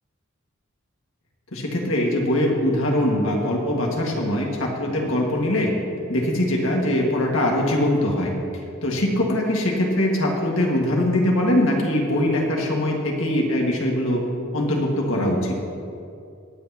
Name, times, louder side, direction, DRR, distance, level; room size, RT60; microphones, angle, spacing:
voice 1, 1.5-5.7 6.1-8.3 8.8-14.2 14.5-15.5, left 1 dB, 80° left, -1 dB, 1.9 m, -22 dB
22.5 x 8.2 x 2.9 m, 2.5 s
head